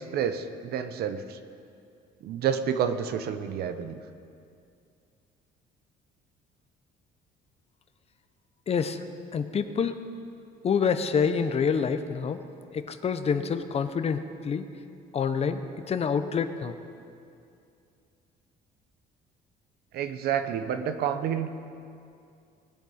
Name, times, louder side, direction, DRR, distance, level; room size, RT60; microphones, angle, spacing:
voice 1, 0.0-1.4 2.2-4.0 19.9-21.5, right 8 dB, 70° right, 9 dB, 0.8 m, -29 dB
voice 2, 8.7-9.0 9.3-10.0 10.6-12.4 12.7-14.7 15.1-15.6 15.9-16.7, left 6 dB, 35° left, 10 dB, 0.7 m, -27 dB
19.0 x 10.0 x 4.3 m, 2.5 s
cardioid pair, 110°, 17 cm